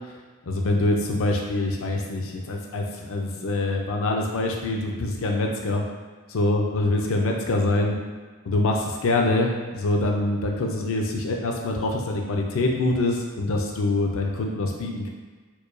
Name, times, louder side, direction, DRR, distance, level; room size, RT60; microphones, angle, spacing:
voice 1, 0.5-5.8 6.3-8.0 8.5-15.1, left 2 dB, 65° left, 1 dB, 0.5 m, -25 dB
4.5 x 2.3 x 2.6 m, 1.4 s
head